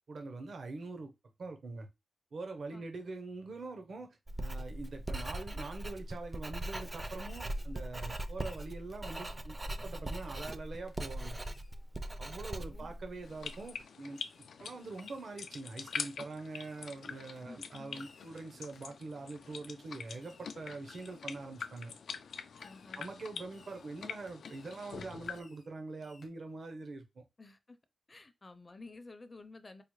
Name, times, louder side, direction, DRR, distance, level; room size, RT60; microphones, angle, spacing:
voice 1, 0.1-1.1 1.4-1.9 2.3-11.4 12.2-14.2 14.6-22.0 23.0-27.2, right 3 dB, 65° right, 0.7 m, -44 dB
Writing, 4.3-13.7, right 1 dB, 25° right, 0.4 m, -40 dB
Fireworks, 7.3-7.7 8.0-8.8 9.2-9.4 10.0-10.5 10.9-11.1 11.4-11.8 12.2-12.3 13.4-13.8 14.1-14.5 15.0-15.3 15.8-16.2 16.5-16.9 17.4-17.5 17.9-18.4 18.7-19.0 20.2-20.6 20.9-21.3 21.8-21.9 22.6-22.9 23.4-23.9 24.3-24.8 25.3-25.7 26.0-26.3, left 4 dB, 60° left, 0.8 m, -63 dB
voice 2, 12.5-12.9 17.4-18.0 22.6-23.1 27.4-27.8 28.1-29.8, left 3 dB, 30° left, 0.5 m, -52 dB
sound 1, 13.2-25.4, left 6 dB, 90° left, 0.3 m, -45 dB
4.7 x 2.1 x 3.0 m
wide cardioid pair, 100°, 0 cm